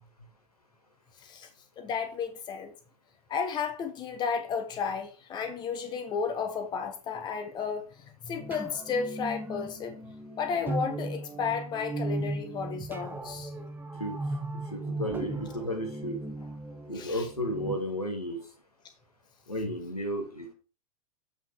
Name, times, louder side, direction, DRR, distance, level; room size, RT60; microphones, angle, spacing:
voice 1, 1.8-2.7 3.3-7.9 8.2-10.0 10.4-13.5 16.9-17.2, left 6 dB, 20° left, 1.3 m, -33 dB
sound 1, 8.4-17.8, right 2 dB, 10° right, 1.3 m, -37 dB
voice 2, 14.5-16.2 16.9-18.4 19.5-20.5, equal, 85° left, 2.1 m, -33 dB
7.9 x 5.8 x 4.6 m
figure-of-eight pair, 100°, 19 cm